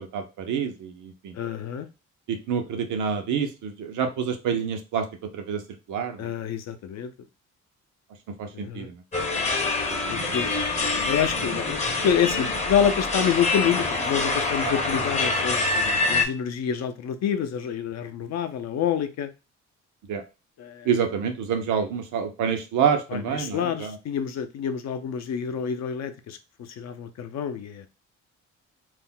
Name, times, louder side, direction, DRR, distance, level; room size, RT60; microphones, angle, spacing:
voice 1, 0.0-1.3 2.3-5.1 5.3-5.6 5.9-6.3 8.4-9.0 14.6-14.7 20.1-20.2 20.9-23.9, right 7 dB, 80° right, 0.7 m, -27 dB
voice 2, 1.3-1.9 6.2-7.1 8.5-8.9 10.1-10.5 11.1-19.3 20.6-20.9 23.1-27.9, left 8 dB, 60° left, 0.5 m, -27 dB
sound 1, 9.1-16.3, left 3 dB, 20° left, 0.6 m, -25 dB
2.4 x 2.1 x 3.7 m
cardioid pair, 90°, 30 cm